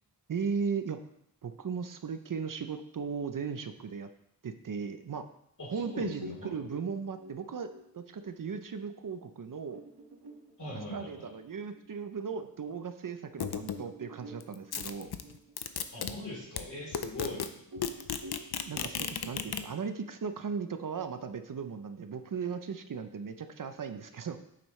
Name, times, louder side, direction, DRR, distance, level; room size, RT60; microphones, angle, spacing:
voice 1, 0.3-1.0 1.4-4.1 4.4-5.2 5.7-9.8 10.7-15.1 18.6-24.4, right 6 dB, 60° right, 9 dB, 0.6 m, -37 dB
voice 2, 5.6-6.5 10.6-11.2 15.9-17.5, left 2 dB, 50° left, -4 dB, 3.7 m, -41 dB
sound 1, 5.7-12.8 13.2-13.3 13.7-17.3 17.7-20.8, right 1 dB, 80° right, 1.7 m, -51 dB
sound 2, 13.4-13.8 14.4-16.1 16.6-16.7 16.9-17.5 17.8-19.6, left 8 dB, 80° left, 0.6 m, -34 dB
8.9 x 7.7 x 3.2 m, 0.74 s
wide cardioid pair, 110°, 37 cm